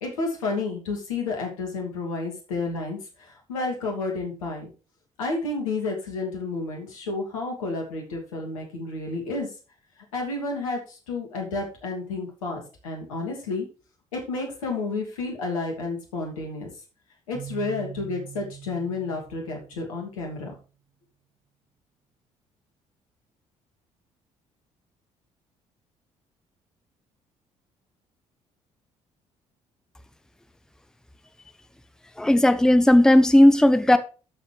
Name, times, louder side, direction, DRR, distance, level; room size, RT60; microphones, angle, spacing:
voice 1, 0.0-4.7 5.2-9.5 10.1-13.6 14.1-16.7 17.3-20.5, left 3 dB, 75° left, 2.7 m, -31 dB
Keyboard (musical), 17.3-20.2, right 9 dB, 35° right, 1.5 m, -42 dB
voice 2, 32.2-34.0, left 1 dB, 5° left, 0.9 m, -16 dB
12.5 x 7.0 x 3.4 m
figure-of-eight pair, 45°, 18 cm